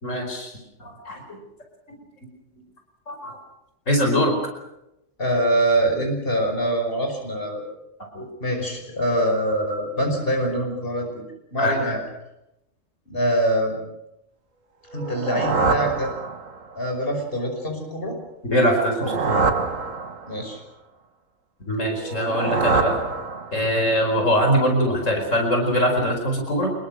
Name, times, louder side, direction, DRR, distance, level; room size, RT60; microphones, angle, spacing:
voice 1, 0.0-0.5 0.8-1.4 3.1-3.4 3.9-4.3 8.1-8.3 11.6-12.0 18.4-19.4 21.7-23.0 23.5-26.7, equal, 80° left, 2 dB, 5.2 m, -22 dB
voice 2, 5.2-7.7 8.4-11.2 11.5-12.0 13.1-13.8 14.9-16.1 16.8-18.2 20.3-20.6, right 1 dB, 45° left, 3 dB, 5.7 m, -24 dB
sound 1, 14.9-16.8 18.7-20.5 22.0-23.8, right 4 dB, 85° right, 2.0 m, -25 dB
26.0 x 21.5 x 6.4 m, 0.87 s
omnidirectional pair, 1.3 m